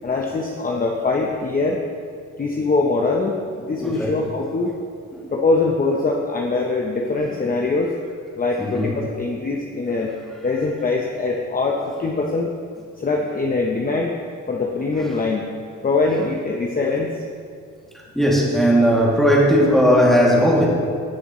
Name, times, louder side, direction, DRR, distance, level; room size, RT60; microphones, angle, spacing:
voice 1, 0.0-1.8 2.4-4.7 5.3-7.9 8.4-10.1 10.4-12.5 13.0-14.2 14.5-15.5 15.8-17.1, left 3 dB, 30° left, 0 dB, 0.9 m, -22 dB
voice 2, 3.8-4.1 5.1-5.3 8.6-8.9 18.1-20.7, equal, ahead, -5 dB, 2.6 m, -17 dB
17.5 x 6.4 x 3.2 m, 2.2 s
cardioid pair, 90°, 30 cm